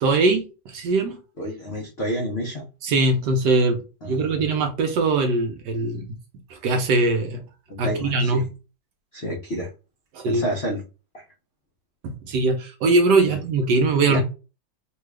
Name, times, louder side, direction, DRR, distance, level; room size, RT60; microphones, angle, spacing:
voice 1, 0.0-1.2 2.8-6.1 6.5-7.4 7.8-8.5 10.1-10.4 12.0-14.2, right 3 dB, 70° right, 1.1 m, -21 dB
voice 2, 1.4-2.6 4.0-4.5 7.7-8.4 9.1-9.7 10.2-10.8 11.1-11.2 13.2-13.4 14.1-14.2, equal, 65° left, 0.6 m, -29 dB
3.4 x 2.3 x 3.2 m
omnidirectional pair, 2.2 m